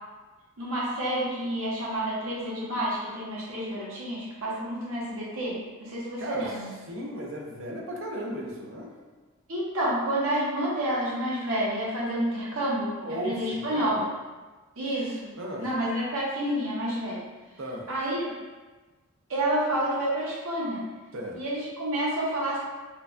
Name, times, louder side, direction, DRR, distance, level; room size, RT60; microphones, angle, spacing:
voice 1, 0.6-6.7 9.5-14.1 14.8-15.3 15.6-17.2 17.9-18.3 19.3-20.8 21.3-22.6, right 1 dB, 85° right, -6 dB, 1.0 m, -29 dB
voice 2, 6.2-6.6 6.9-8.9 12.5-12.6 13.0-13.9 15.4-15.7 17.6-17.9 21.1-21.4, equal, 65° right, -1 dB, 0.6 m, -35 dB
4.3 x 2.3 x 2.5 m, 1.3 s
head